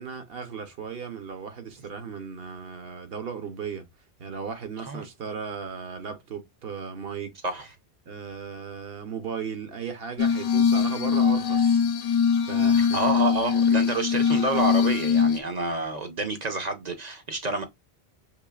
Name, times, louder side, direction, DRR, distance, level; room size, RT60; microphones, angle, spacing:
voice 1, 0.0-3.9 4.2-7.3 8.1-12.1 12.5-13.0, right 6 dB, 65° right, 1.0 m, -36 dB
Glass, 10.2-15.4, left 6 dB, 70° left, 0.8 m, -22 dB
voice 2, 12.9-17.6, right 2 dB, 45° right, 0.7 m, -28 dB
5.0 x 3.1 x 2.3 m
omnidirectional pair, 1.1 m